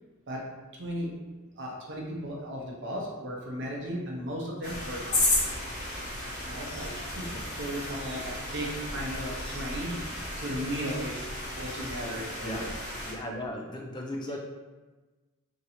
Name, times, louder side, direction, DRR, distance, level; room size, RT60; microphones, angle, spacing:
voice 1, 0.3-1.2 1.6-5.5 6.4-11.3 11.5-12.7 14.3-14.4, equal, 55° right, -2 dB, 0.7 m, -36 dB
sound 1, 4.6-13.1, left 2 dB, 35° left, 1.0 m, -33 dB
voice 2, 13.0-14.4, left 1 dB, 20° left, 0 dB, 0.4 m, -36 dB
3.0 x 2.7 x 4.0 m, 1.2 s
head